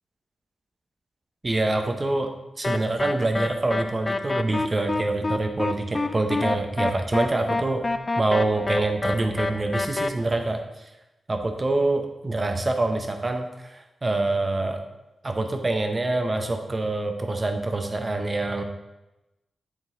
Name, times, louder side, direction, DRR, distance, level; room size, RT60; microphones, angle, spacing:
voice 1, 1.4-2.3 2.6-7.9 8.2-10.6 11.3-14.8 15.2-18.6, right 2 dB, 30° right, 5 dB, 0.8 m, -25 dB
sound 1, 2.6-10.1, left 2 dB, 30° left, 0.4 m, -27 dB
9.8 x 3.9 x 3.8 m, 0.99 s
wide cardioid pair, 100°, 0 cm